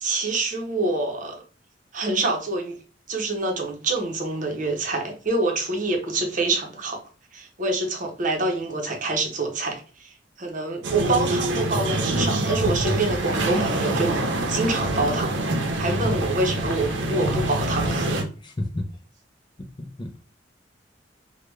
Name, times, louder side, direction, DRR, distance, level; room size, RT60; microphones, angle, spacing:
voice 1, 0.0-1.4 1.9-2.8 3.1-7.0 7.3-14.2 14.5-15.4 15.8-18.2, right 2 dB, 45° right, 0.8 m, -26 dB
sound 1, 10.8-18.2, right 1 dB, 90° right, 0.7 m, -25 dB
voice 2, 15.8-16.3 18.4-18.9 19.8-20.2, left 1 dB, 25° left, 0.4 m, -30 dB
3.4 x 2.2 x 3.1 m
head